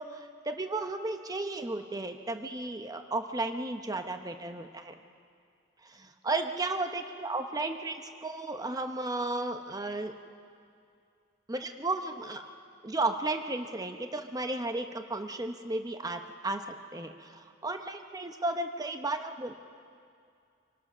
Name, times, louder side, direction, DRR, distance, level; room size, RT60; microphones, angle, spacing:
voice 1, 0.0-5.0 5.8-10.1 11.5-12.4 12.8-16.6 16.9-19.5, right 2 dB, 20° right, 6 dB, 0.9 m, -34 dB
26.5 x 18.5 x 6.2 m, 2.4 s
head